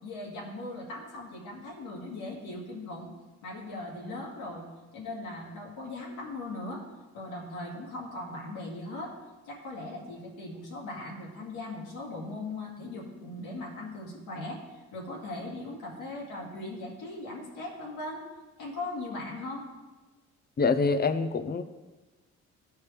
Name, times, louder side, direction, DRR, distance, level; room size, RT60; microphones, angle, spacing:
voice 1, 0.0-3.1 3.4-4.6 4.9-6.8 7.1-9.1 9.5-14.6 14.9-18.2 18.6-19.7, left 2 dB, 85° left, -3 dB, 2.0 m, -39 dB
voice 2, 20.6-21.6, left 4 dB, 30° left, 10 dB, 0.6 m, -25 dB
13.0 x 4.5 x 3.4 m, 1.2 s
cardioid pair, 90°, 30 cm